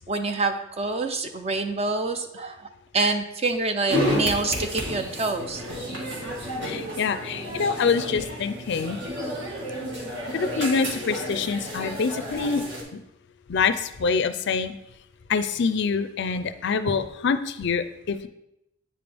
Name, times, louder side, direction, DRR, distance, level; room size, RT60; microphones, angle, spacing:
voice 1, 0.1-2.6 2.9-5.6, right 3 dB, 30° right, 7 dB, 0.5 m, -26 dB
sound 1, 3.9-12.8, equal, 60° right, 1.8 m, -31 dB
voice 2, 6.6-9.0 10.3-12.6 13.5-14.7 15.3-18.3, left 5 dB, 55° left, 11 dB, 0.4 m, -25 dB
8.7 x 5.2 x 3.4 m, 0.83 s
head